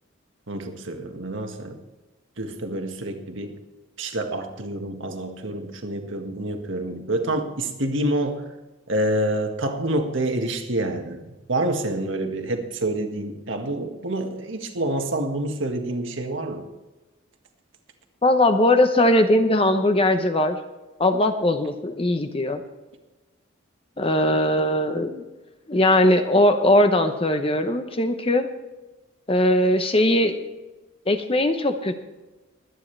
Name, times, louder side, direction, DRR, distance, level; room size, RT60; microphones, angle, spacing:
voice 1, 0.5-1.8 2.4-3.6 4.0-8.5 8.9-11.2 11.5-16.7, right 1 dB, 65° right, 4 dB, 1.7 m, -27 dB
voice 2, 18.2-20.6 21.0-22.6 24.0-25.2 25.7-28.5 29.3-30.4 31.1-32.0, left 1 dB, 25° left, 7 dB, 0.9 m, -20 dB
22.5 x 9.9 x 3.3 m, 1.1 s
head